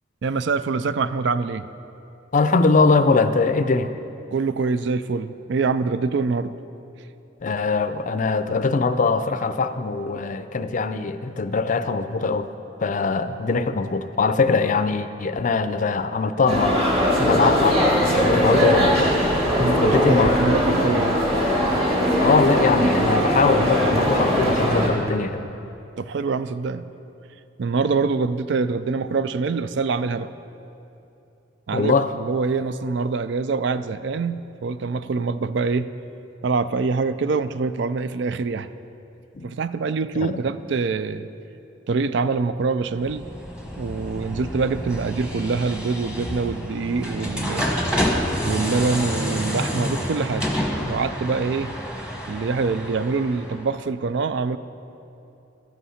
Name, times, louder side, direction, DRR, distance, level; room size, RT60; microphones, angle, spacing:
voice 1, 0.2-1.7 4.3-6.5 19.6-21.2 26.0-26.9 27.6-30.3 31.7-35.9 36.4-38.7 39.4-41.3 41.9-43.3 43.8-47.7 48.4-50.5 50.8-51.7 52.3-54.6, right 4 dB, 65° right, 13 dB, 0.4 m, -25 dB
voice 2, 2.3-3.9 7.4-12.5 12.8-16.8 17.2-19.1 19.6-20.4 22.2-25.4 31.7-32.1 39.3-39.5 40.2-40.4, left 4 dB, 40° left, 11 dB, 0.5 m, -22 dB
sound 1, 16.5-24.9, equal, 30° right, 2.1 m, -20 dB
sound 2, 42.9-53.7, equal, 5° right, 1.1 m, -28 dB
13.0 x 8.3 x 5.7 m, 2.8 s
head